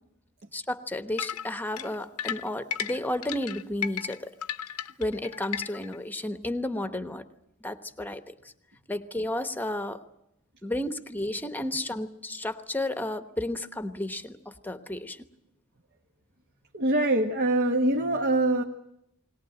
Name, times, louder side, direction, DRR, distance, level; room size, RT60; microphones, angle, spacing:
voice 1, 0.5-4.3 5.0-7.2 7.6-8.3 8.9-10.0 10.6-15.2, left 1 dB, 10° left, 10 dB, 1.1 m, -32 dB
sound 1, 1.2-6.0, left 9 dB, 90° left, 0.9 m, -34 dB
voice 2, 16.7-18.6, right 1 dB, 50° right, 3 dB, 1.4 m, -24 dB
21.5 x 18.5 x 9.0 m, 0.83 s
head